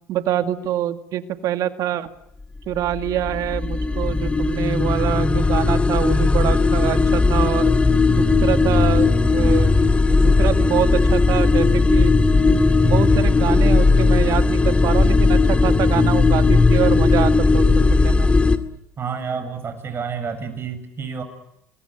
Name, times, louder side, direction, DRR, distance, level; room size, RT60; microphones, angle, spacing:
voice 1, 0.1-2.1 2.7-7.7 8.1-9.8 10.1-12.1 12.5-18.3, right 11 dB, 60° right, 9 dB, 2.3 m, -25 dB
sound 1, 2.6-18.6, left 3 dB, 20° left, 2.3 m, -17 dB
voice 2, 19.0-21.2, right 6 dB, 35° right, 8 dB, 7.3 m, -29 dB
27.0 x 22.0 x 9.1 m, 0.82 s
supercardioid pair, 80°, 7 cm